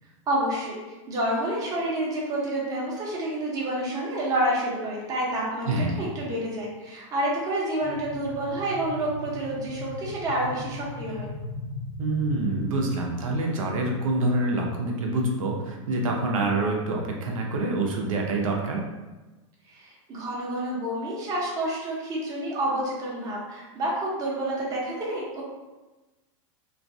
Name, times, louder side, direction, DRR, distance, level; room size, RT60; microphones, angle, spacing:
voice 1, 0.3-0.8 1.1-11.3 19.7-25.4, right 1 dB, 20° right, -4 dB, 0.6 m, -29 dB
voice 2, 5.7-6.2 12.0-18.8, right 2 dB, 85° right, 0 dB, 0.5 m, -26 dB
sound 1, 7.8-12.8, left 2 dB, 60° left, 0.8 m, -37 dB
2.3 x 2.2 x 2.6 m, 1.2 s
supercardioid pair, 140°, 17 cm